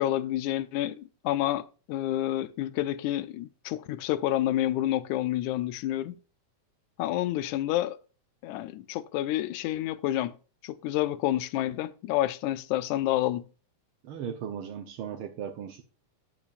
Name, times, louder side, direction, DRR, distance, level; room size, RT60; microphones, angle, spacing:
voice 1, 0.0-6.2 7.0-8.0 8.4-10.3 10.6-13.4, left 14 dB, 80° left, 2.0 m, -29 dB
voice 2, 14.0-15.8, right 8 dB, 70° right, 1.3 m, -37 dB
12.0 x 8.8 x 2.5 m
omnidirectional pair, 3.5 m